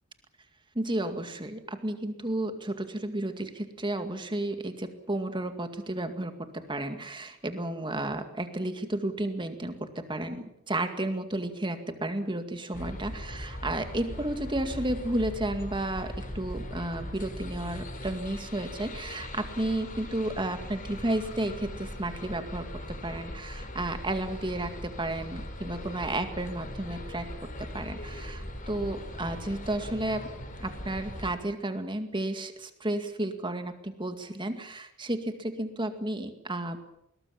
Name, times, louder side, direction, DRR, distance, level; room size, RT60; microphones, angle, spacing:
voice 1, 0.8-27.3 27.6-30.3 30.6-36.8, right 1 dB, 20° right, 8 dB, 2.1 m, -32 dB
sound 1, 12.7-31.3, left 1 dB, 40° left, 3.9 m, -40 dB
21.0 x 20.0 x 7.2 m, 0.77 s
head